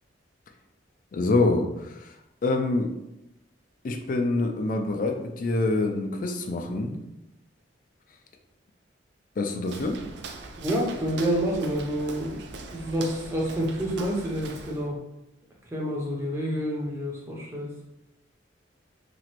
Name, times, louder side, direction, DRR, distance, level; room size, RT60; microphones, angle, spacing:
voice 1, 1.1-2.2 2.4-2.9 3.8-7.0 9.4-10.0, left 2 dB, 45° left, 4 dB, 0.3 m, -26 dB
Walk footsteps, 9.6-14.9, right 3 dB, 60° right, 0.3 m, -41 dB
voice 2, 10.6-12.4 12.7-15.0 15.7-17.7, equal, 15° right, -3 dB, 0.6 m, -28 dB
2.9 x 2.5 x 2.9 m, 0.89 s
head